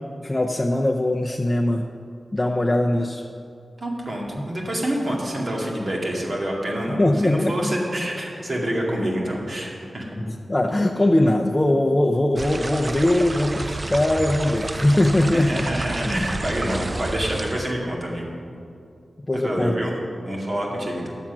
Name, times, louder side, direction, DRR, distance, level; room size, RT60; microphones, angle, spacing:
voice 1, 0.2-1.8 2.3-3.3 7.0-7.7 10.2-15.7 19.3-19.7, left 1 dB, 25° left, 1 dB, 0.6 m, -21 dB
voice 2, 3.8-10.2 15.3-18.3 19.3-20.0 20.2-21.1, right 1 dB, 55° right, -2 dB, 2.2 m, -27 dB
sound 1, 12.4-17.7, right 2 dB, 35° right, 0.4 m, -30 dB
10.5 x 7.3 x 6.1 m, 2.4 s
cardioid pair, 50°, 0 cm